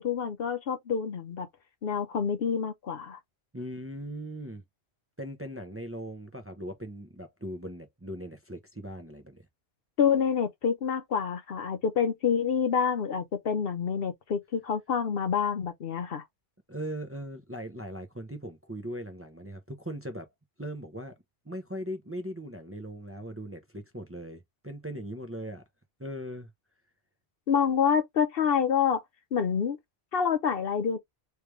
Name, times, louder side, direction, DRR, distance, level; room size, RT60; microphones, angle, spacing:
voice 1, 0.0-1.5 1.8-3.2 10.0-16.2 27.5-29.0 29.3-29.8 30.1-31.0, left 7 dB, 65° left, 0.9 m, -27 dB
voice 2, 3.5-4.6 5.2-9.5 16.7-20.3 20.6-21.2 21.4-25.6 26.0-26.5, equal, 15° right, 0.7 m, -39 dB
3.3 x 3.2 x 3.2 m
omnidirectional pair, 1.1 m